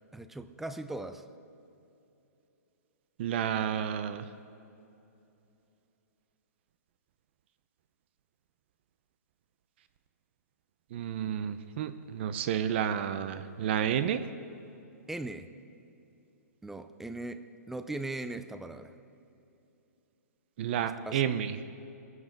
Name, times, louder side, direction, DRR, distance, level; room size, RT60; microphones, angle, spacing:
voice 1, 0.1-1.3 15.1-15.5 16.6-18.9 21.1-21.2, right 2 dB, 5° right, 10 dB, 0.4 m, -39 dB
voice 2, 3.2-4.3 10.9-14.3 20.6-21.6, right 9 dB, 40° right, 11 dB, 0.6 m, -31 dB
22.5 x 9.4 x 5.2 m, 2.8 s
hypercardioid pair, 160°, 9 cm